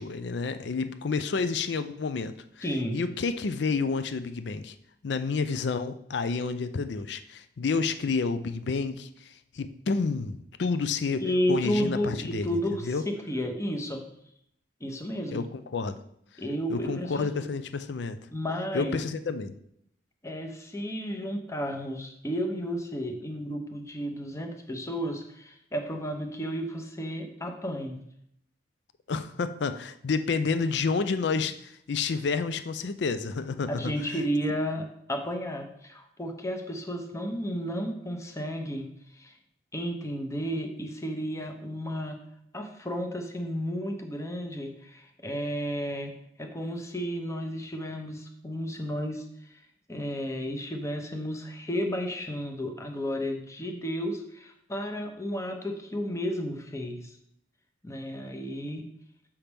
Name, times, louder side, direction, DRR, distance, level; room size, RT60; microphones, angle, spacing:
voice 1, 0.0-2.6 2.9-4.7 5.0-11.2 11.5-12.5 12.9-13.0 15.3-16.0 16.7-18.2 18.7-19.5 29.1-33.8, left 4 dB, 65° left, 11 dB, 0.5 m, -29 dB
voice 2, 2.6-3.0 11.2-14.0 14.8-15.5 16.4-17.5 18.3-19.0 20.2-28.0 33.7-38.9 39.1-39.3 39.7-42.2 42.5-46.1 46.4-49.6 49.9-57.2 57.8-58.8, equal, 15° left, 4 dB, 0.8 m, -32 dB
7.1 x 5.8 x 3.4 m, 0.71 s
head